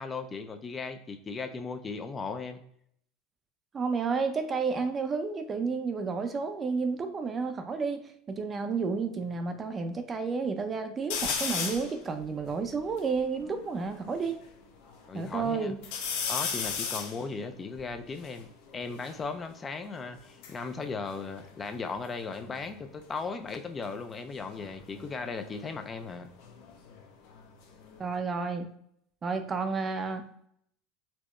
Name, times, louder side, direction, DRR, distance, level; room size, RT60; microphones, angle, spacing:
voice 1, 0.0-2.6 15.1-15.8 16.3-26.3, left 4 dB, 25° left, 8 dB, 0.4 m, -37 dB
voice 2, 3.7-8.0 8.3-14.4 15.1-15.8 28.0-28.7 29.2-30.3, right 4 dB, 30° right, 8 dB, 0.5 m, -31 dB
sound 1, 11.1-11.9 12.5-12.6 12.8-14.3 14.8-15.4 15.8-19.2 20.1-22.0 22.3-22.8 24.4-27.0 27.4-28.1, left 6 dB, 70° left, 0.8 m, -36 dB
4.2 x 2.2 x 3.1 m, 0.68 s
supercardioid pair, 105°, 0 cm